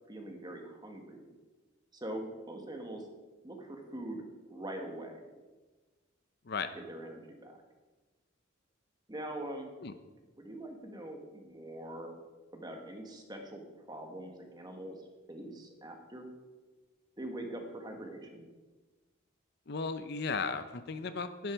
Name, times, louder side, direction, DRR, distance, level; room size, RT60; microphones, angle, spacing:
voice 1, 0.1-1.3 1.9-3.1 3.4-5.3 6.9-7.6 9.1-9.7 10.4-12.1 12.5-15.0 15.3-16.3 17.2-18.5, right 1 dB, 20° right, 3 dB, 1.5 m, -43 dB
voice 2, 19.7-21.5, left 4 dB, 55° left, 10 dB, 0.6 m, -35 dB
11.5 x 10.0 x 4.6 m, 1.2 s
head